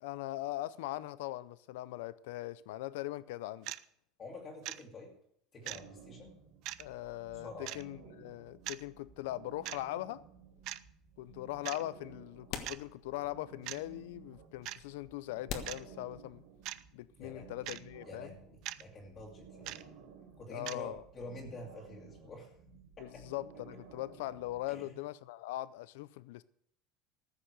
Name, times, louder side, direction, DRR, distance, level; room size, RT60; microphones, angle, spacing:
voice 1, 0.0-3.7 6.8-7.5 7.7-10.2 11.2-16.4 16.9-18.3 20.5-21.0 23.0-26.4, left 16 dB, 85° left, 0.5 m, -40 dB
sound 1, 3.6-3.8 4.6-4.8 5.7-5.8 6.6-6.8 7.7-7.8 8.6-8.8 9.6-9.8 10.7-10.8 11.6-11.8 12.6-12.8 13.6-13.8 14.6-14.8 15.7-15.8 16.6-16.8 17.7-17.8 18.6-18.8 19.7-19.8 20.6-20.8, right 16 dB, 55° right, 0.5 m, -40 dB
voice 2, 4.2-5.1 5.5-6.3 7.3-7.7 17.2-17.7 18.0-20.0 20.4-22.5 23.0-23.2 24.7-25.0, left 2 dB, 30° left, 2.3 m, -48 dB
sound 2, 5.6-24.6, right 6 dB, 80° right, 3.5 m, -56 dB
sound 3, 10.6-10.7 11.9-12.0 12.5-13.4 13.7-13.8 14.6-14.7 15.5-16.7, left 7 dB, 55° left, 1.6 m, -44 dB
14.5 x 6.4 x 8.2 m
supercardioid pair, 135°, 0 cm